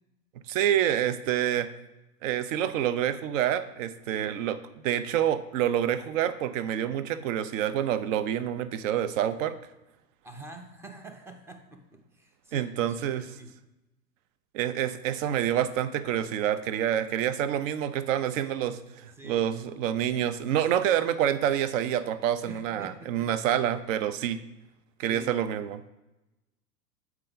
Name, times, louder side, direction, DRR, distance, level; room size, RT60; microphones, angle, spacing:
voice 1, 0.5-1.7 2.2-4.6 4.8-9.5 12.5-13.3 14.5-24.4 25.0-25.8, right 10 dB, 50° right, 13 dB, 0.6 m, -27 dB
voice 2, 10.2-13.5 19.2-19.5 22.4-23.3 25.1-25.3, right 2 dB, 5° right, 6 dB, 0.5 m, -46 dB
7.5 x 4.6 x 3.8 m, 0.98 s
hypercardioid pair, 95°, 50 cm